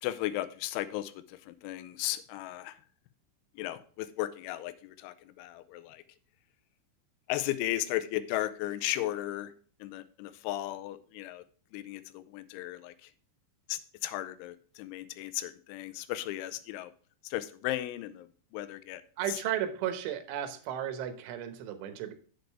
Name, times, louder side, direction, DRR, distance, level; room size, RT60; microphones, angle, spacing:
voice 1, 0.0-2.8 3.6-6.0 7.3-9.5 9.8-11.4 11.7-13.1 13.7-16.9 17.2-19.0, left 14 dB, 90° left, 13 dB, 3.0 m, -35 dB
voice 2, 19.2-22.1, right 10 dB, 85° right, 9 dB, 3.5 m, -34 dB
8.3 x 7.9 x 3.4 m, 0.43 s
omnidirectional pair, 5.5 m